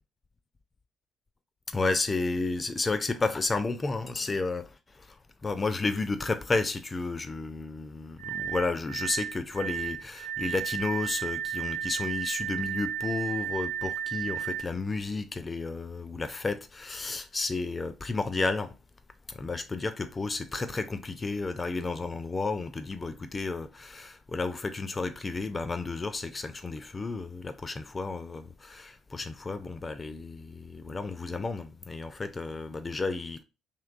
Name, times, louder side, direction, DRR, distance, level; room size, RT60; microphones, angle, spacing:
voice 1, 1.7-5.2 5.4-18.8 19.3-33.4, left 3 dB, 25° left, 0.3 m, -32 dB
sound 1, 8.2-14.6, right 9 dB, 50° right, 0.8 m, -33 dB
3.1 x 2.8 x 2.4 m
figure-of-eight pair, 45°, 0 cm